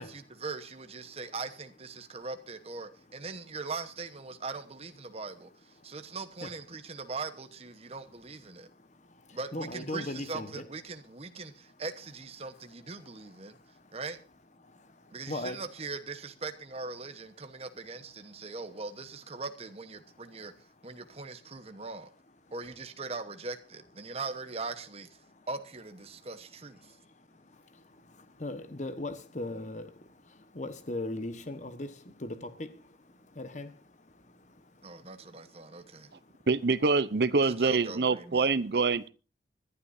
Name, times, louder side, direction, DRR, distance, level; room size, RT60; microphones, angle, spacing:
voice 1, 0.0-8.7 9.3-13.6 13.9-14.2 15.1-20.5 20.8-22.1 22.5-25.1 25.5-27.0 34.8-36.1 37.4-38.5, right 3 dB, 35° right, 1.1 m, -40 dB
voice 2, 5.8-6.5 7.8-7.9 8.5-10.7 11.7-11.8 13.0-14.0 14.6-15.6 18.3-18.5 20.0-21.2 21.5-21.9 22.5-22.6 24.0-24.2 25.2-25.5 26.1-26.3 26.7-36.5, left 1 dB, 40° left, 1.3 m, -42 dB
voice 3, 36.5-39.1, right 4 dB, 65° right, 0.7 m, -25 dB
25.0 x 11.5 x 2.7 m
head